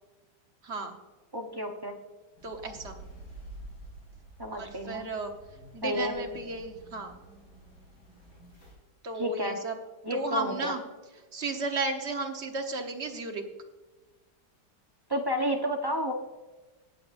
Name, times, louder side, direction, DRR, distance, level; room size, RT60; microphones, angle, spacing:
voice 1, 0.6-1.0 2.4-2.9 4.5-5.3 5.7-7.2 9.0-9.7 10.1-10.8 11.3-13.4, right 3 dB, 45° right, 4 dB, 1.3 m, -34 dB
voice 2, 1.3-2.0 4.4-5.1 5.8-6.1 9.1-9.6 10.0-10.7 15.1-16.1, equal, 20° right, 2 dB, 0.7 m, -31 dB
sound 1, 2.4-8.7, right 1 dB, 65° left, 4.8 m, -49 dB
19.5 x 7.8 x 2.6 m, 1.2 s
omnidirectional pair, 1.9 m